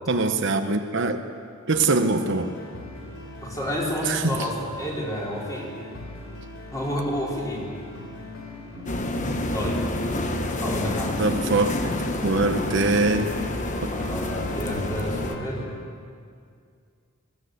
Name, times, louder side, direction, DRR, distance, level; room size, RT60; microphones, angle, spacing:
voice 1, 0.1-1.2 1.7-2.5 4.0-4.3 11.2-13.3, right 3 dB, 60° right, 6 dB, 1.0 m, -23 dB
sound 1, 1.7-15.7, left 1 dB, 65° left, 4.0 m, -39 dB
voice 2, 3.4-5.8 6.7-7.7 9.1-9.8 10.6-11.3 13.9-15.7, equal, 15° left, -4 dB, 4.4 m, -30 dB
sound 2, 8.9-15.4, left 1 dB, 35° left, 1.1 m, -29 dB
19.5 x 16.5 x 8.0 m, 2.2 s
head